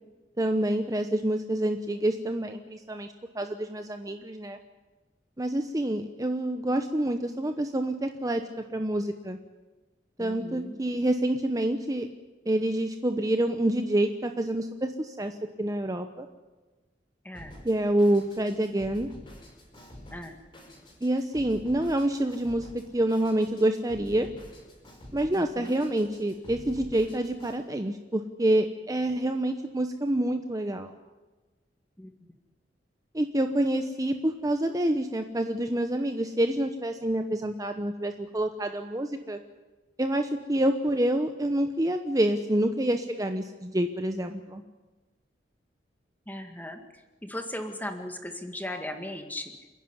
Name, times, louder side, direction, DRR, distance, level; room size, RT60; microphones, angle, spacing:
voice 1, 0.4-3.1 3.3-4.6 5.4-8.4 8.7-9.4 10.2-12.1 12.5-16.3 17.6-19.1 21.0-24.3 25.1-30.9 33.1-39.4 40.0-44.6, right 1 dB, 20° right, 6 dB, 0.9 m, -27 dB
voice 2, 10.2-10.8 17.2-17.6 20.1-20.4 25.3-25.8 32.0-32.1 46.3-49.5, left 1 dB, 10° left, 5 dB, 2.0 m, -38 dB
Drum kit, 17.3-27.6, left 1 dB, 25° left, 5.3 m, -48 dB
28.5 x 10.5 x 9.8 m, 1.2 s
head